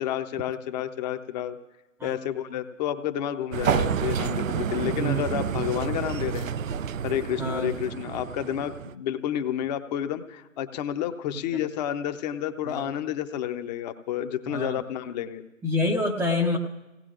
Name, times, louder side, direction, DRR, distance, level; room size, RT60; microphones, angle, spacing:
voice 1, 0.0-1.6 2.0-6.5 7.0-15.4, left 10 dB, 35° left, 8 dB, 0.9 m, -30 dB
sound 1, 3.5-8.9, right 8 dB, 85° right, 0.6 m, -29 dB
voice 2, 4.9-5.2 7.4-7.7 12.7-12.9 14.5-14.8 15.6-16.6, left 1 dB, 5° right, -1 dB, 0.6 m, -27 dB
30.0 x 17.5 x 2.5 m, 1.0 s
figure-of-eight pair, 125°, 39 cm